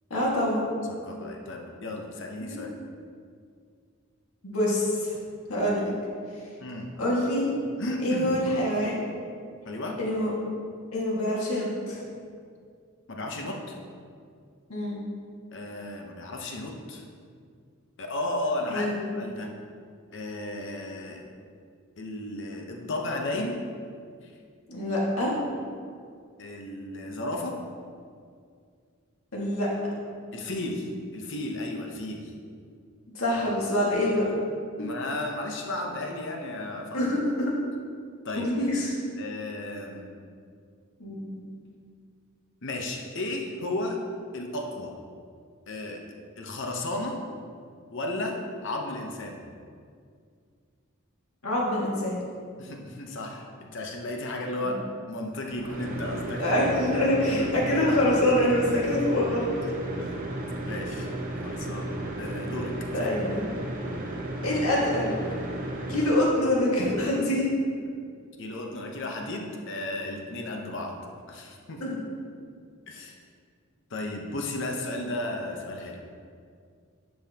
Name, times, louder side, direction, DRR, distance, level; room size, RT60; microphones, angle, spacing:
voice 1, 0.1-0.6 2.5-2.6 4.4-5.2 5.5-5.8 7.0-7.5 8.0-9.0 10.0-10.3 10.9-12.0 14.7-15.0 18.7-19.2 24.7-25.3 29.3-29.7 33.1-34.4 34.8-34.9 36.9-37.5 38.4-38.9 41.0-41.4 51.4-52.2 54.6-54.7 56.4-59.5 62.9-63.5 64.4-65.2 65.9-67.5 71.8-72.0, left 1 dB, 75° left, -5 dB, 1.9 m, -25 dB
voice 2, 0.9-2.7 6.6-6.9 7.8-8.4 9.6-10.0 13.1-13.8 15.5-17.0 18.0-19.5 20.1-21.2 22.0-23.6 24.2-24.3 26.4-27.6 30.3-32.3 34.8-37.0 38.2-38.5 39.2-40.1 42.6-44.0 44.3-44.9 45.7-46.0 46.4-47.2 47.9-49.4 52.6-53.4 53.7-57.0 57.3-57.5 60.0-60.3 60.7-61.1 61.4-63.2 68.4-71.0 71.3-71.8 72.9-73.1 73.9-76.0, left 1 dB, 55° left, 1 dB, 0.9 m, -34 dB
sound 1, 55.5-66.2, right 1 dB, 40° right, 0.8 m, -34 dB
10.5 x 5.6 x 2.9 m, 2.2 s
head